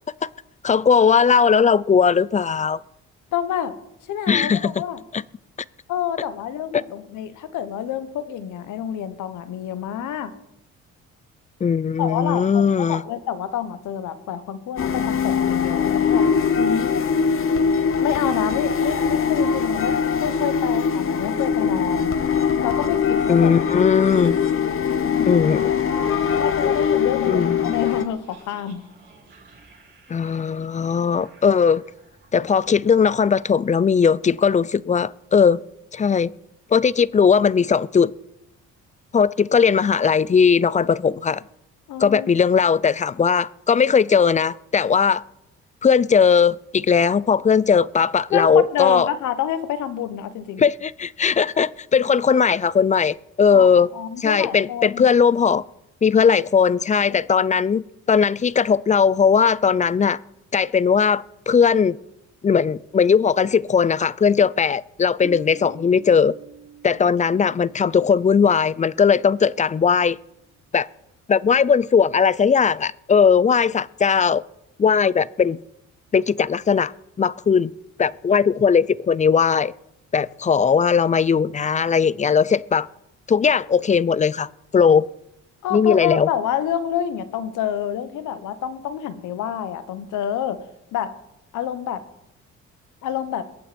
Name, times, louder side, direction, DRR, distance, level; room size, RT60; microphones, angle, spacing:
voice 1, 0.6-2.8 4.3-4.7 5.1-5.2 11.6-13.0 23.3-24.4 25.3-25.7 27.3-27.7 30.1-31.8 32.3-35.6 35.9-36.3 36.7-38.1 39.1-41.4 42.0-45.2 45.8-49.1 50.6-53.9 54.2-55.6 56.0-60.2 60.5-62.0 62.4-66.4 66.8-70.2 70.7-70.9 71.3-74.4 74.8-75.6 76.1-76.9 77.2-77.7 78.0-79.7 80.1-82.9 83.3-85.1 85.7-86.3, left 6 dB, 25° left, 0.4 m, -18 dB
voice 2, 3.3-3.7 4.1-5.0 5.9-10.4 12.0-16.9 18.0-22.2 22.6-23.8 26.3-28.8 41.9-42.3 48.3-50.6 53.5-55.1 57.1-57.2 85.6-90.6 90.9-91.1 91.5-92.0 93.0-93.5, left 9 dB, 85° left, 1.3 m, -28 dB
sound 1, 14.8-28.0, left 6 dB, 45° left, 1.2 m, -22 dB
sound 2, 23.1-34.7 35.0-35.1, right 3 dB, 40° right, 6.8 m, -50 dB
Piano, 65.2-70.6, right 2 dB, 10° right, 3.6 m, -46 dB
22.0 x 9.2 x 4.3 m
cardioid pair, 90°, 30 cm